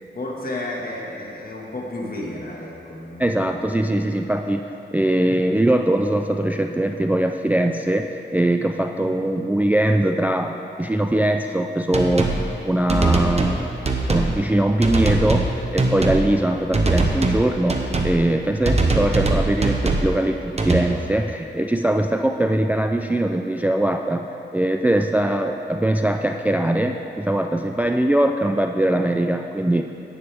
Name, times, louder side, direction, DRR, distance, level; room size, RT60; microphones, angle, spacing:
voice 1, 0.1-3.6 9.0-9.1, left 1 dB, 50° left, -3 dB, 1.8 m, -32 dB
voice 2, 3.2-4.7 4.9-13.7 14.1-24.3 24.5-29.8, right 1 dB, 10° right, 5 dB, 0.3 m, -21 dB
sound 1, 11.9-12.4 12.9-13.6 13.8-14.3 14.8-15.5 15.8-16.2 16.7-17.4 17.7-18.1 18.6-20.1 20.6-20.8, right 3 dB, 35° right, 0.9 m, -21 dB
11.0 x 9.2 x 3.5 m, 2.8 s
wide cardioid pair, 100°, 19 cm